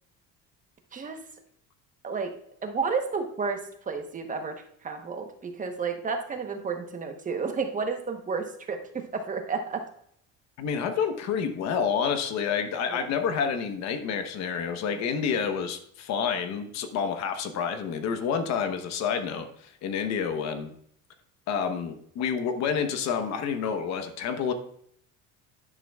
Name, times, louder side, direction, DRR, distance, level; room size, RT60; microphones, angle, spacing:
voice 1, 2.6-9.8 12.9-13.1, right 5 dB, 25° right, 5 dB, 1.1 m, -31 dB
voice 2, 10.6-20.7 21.5-24.5, left 7 dB, 60° left, 8 dB, 1.1 m, -29 dB
10.5 x 10.0 x 2.4 m, 0.68 s
cardioid pair, 140°, 31 cm